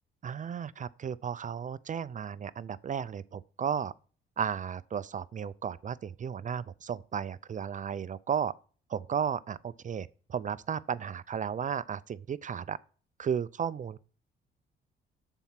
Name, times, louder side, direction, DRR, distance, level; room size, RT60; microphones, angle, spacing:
voice 1, 0.2-3.9 4.4-8.5 8.9-12.8 13.2-14.0, right 7 dB, 40° right, 0.5 m, -34 dB
13.0 x 4.5 x 5.8 m
cardioid pair, 90°, 20 cm